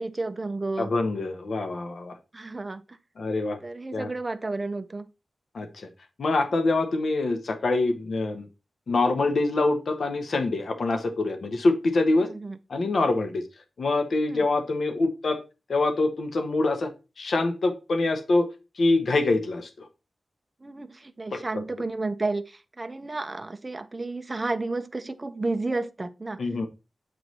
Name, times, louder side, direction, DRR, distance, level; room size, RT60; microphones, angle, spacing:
voice 1, 0.0-0.9 2.3-3.0 3.6-5.1 12.2-12.6 14.3-14.4 20.6-26.7, right 2 dB, 25° right, 0.4 m, -32 dB
voice 2, 0.8-2.1 3.2-3.6 3.9-4.1 5.5-5.9 6.2-8.5 8.9-12.3 12.7-13.4 13.8-15.4 15.7-16.9 17.2-18.5 18.8-19.9 21.3-21.4 26.4-26.7, left 2 dB, 65° left, 0.7 m, -25 dB
7.7 x 3.1 x 4.0 m
wide cardioid pair, 140°, 0 cm